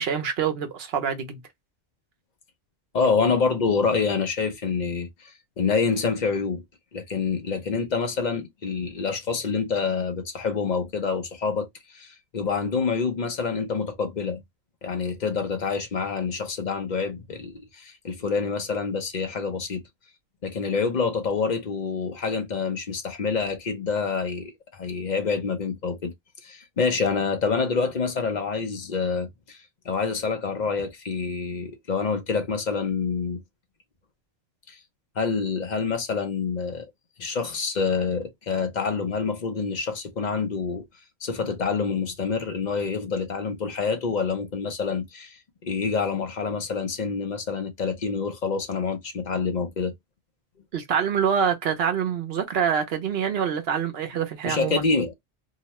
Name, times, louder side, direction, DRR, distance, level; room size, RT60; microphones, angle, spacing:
voice 1, 0.0-1.4 50.7-54.9, right 7 dB, 60° right, 0.9 m, -25 dB
voice 2, 2.9-6.6 6.9-14.4 14.8-19.8 20.4-26.1 26.4-33.4 34.7-34.8 35.2-36.9 37.2-40.8 41.2-49.9 54.4-55.1, left 5 dB, 45° left, 0.7 m, -27 dB
2.8 x 2.2 x 2.9 m
omnidirectional pair, 1.2 m